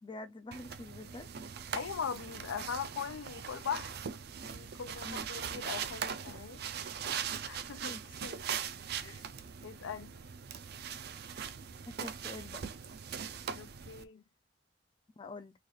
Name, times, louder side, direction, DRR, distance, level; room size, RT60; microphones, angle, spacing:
voice 1, 0.0-1.3 5.0-5.3 6.3-6.5 7.8-8.0 11.9-12.6 15.2-15.5, left 2 dB, 25° left, 0.3 m, -46 dB
sound 1, 0.5-14.0, right 7 dB, 55° right, 0.4 m, -41 dB
voice 2, 1.7-3.9 4.4-6.6 7.5-8.4 9.0-9.2 9.6-10.1 13.5-14.2, left 7 dB, 85° left, 0.5 m, -40 dB
3.2 x 2.4 x 3.9 m
head